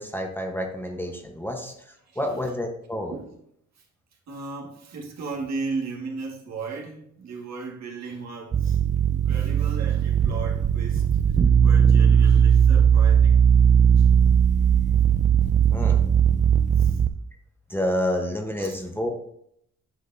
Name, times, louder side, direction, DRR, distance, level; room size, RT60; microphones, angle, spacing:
voice 1, 0.0-3.1 15.7-16.0 17.7-19.1, left 1 dB, 5° left, 2 dB, 1.1 m, -29 dB
voice 2, 4.3-8.8 9.1-13.4 14.0-14.1 15.7-15.9 16.5-17.0 18.6-18.8, right 4 dB, 60° right, -1 dB, 1.9 m, -36 dB
sound 1, 8.5-17.1, right 8 dB, 25° right, 0.4 m, -18 dB
10.0 x 5.1 x 2.7 m, 0.72 s
cardioid pair, 90°, 30 cm